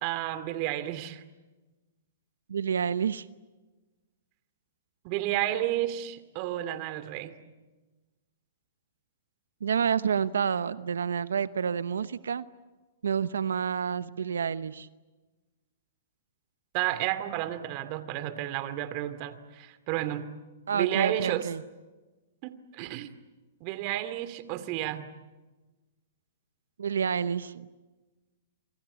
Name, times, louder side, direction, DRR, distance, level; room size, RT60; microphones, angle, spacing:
voice 1, 0.0-1.2 5.0-7.4 16.7-20.3 20.7-21.5 22.4-23.1 23.6-25.1, right 13 dB, 40° right, 12 dB, 2.5 m, -31 dB
voice 2, 2.5-3.2 9.6-12.4 13.0-14.9 20.7-21.6 26.8-27.7, right 7 dB, 85° right, 15 dB, 0.9 m, -29 dB
27.5 x 24.0 x 8.3 m, 1.2 s
hypercardioid pair, 130°, 0 cm